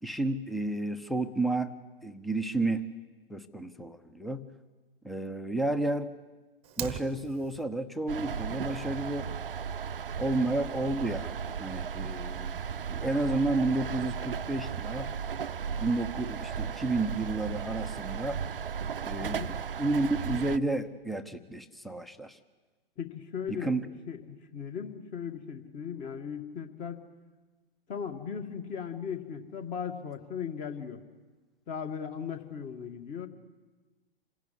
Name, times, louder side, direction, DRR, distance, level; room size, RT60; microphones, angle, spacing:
voice 1, 0.0-1.7 2.0-2.8 3.3-4.4 5.0-6.1 6.8-9.3 10.2-12.6 12.9-15.1 15.8-18.4 19.0-22.4 23.5-23.8, right 2 dB, ahead, 11 dB, 0.8 m, -31 dB
Fire, 6.6-7.6, right 12 dB, 20° right, 1.1 m, -39 dB
sound 1, 8.1-20.6, right 7 dB, 65° right, 0.7 m, -35 dB
voice 2, 19.2-19.5 23.0-23.8 24.1-27.0 27.9-31.0 31.7-33.3, left 7 dB, 25° left, 7 dB, 2.0 m, -37 dB
27.0 x 16.5 x 9.7 m, 1.3 s
figure-of-eight pair, 110°, 29 cm